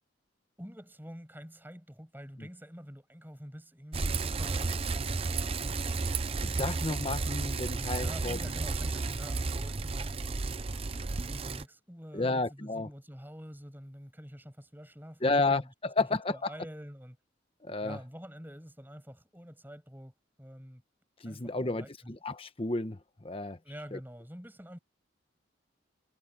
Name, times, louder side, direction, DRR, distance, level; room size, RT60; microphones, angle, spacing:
voice 1, 0.6-4.7 8.0-10.1 11.1-17.2 17.8-20.8 21.2-22.1 23.6-24.8, equal, 10° right, 7.7 m, -47 dB
Bicycle, 3.9-11.6, right 3 dB, 30° right, 0.6 m, -33 dB
voice 2, 6.4-8.4 12.1-12.9 15.2-16.5 17.6-18.0 21.2-23.0 23.2-23.6 23.9-24.0, left 3 dB, 30° left, 1.1 m, -31 dB
head